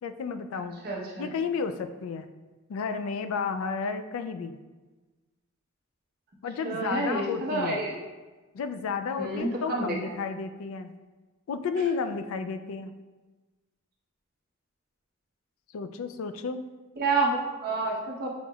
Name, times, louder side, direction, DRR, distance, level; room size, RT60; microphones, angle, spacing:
voice 1, 0.0-0.8 1.2-2.3 2.7-4.5 6.4-7.8 8.5-10.9 11.5-12.9 15.7-16.6, left 5 dB, 80° left, 9 dB, 0.3 m, -32 dB
voice 2, 0.8-1.3 6.6-8.0 9.2-10.1 17.0-18.3, right 2 dB, 45° right, -3 dB, 0.9 m, -29 dB
7.0 x 2.9 x 2.3 m, 1.2 s
head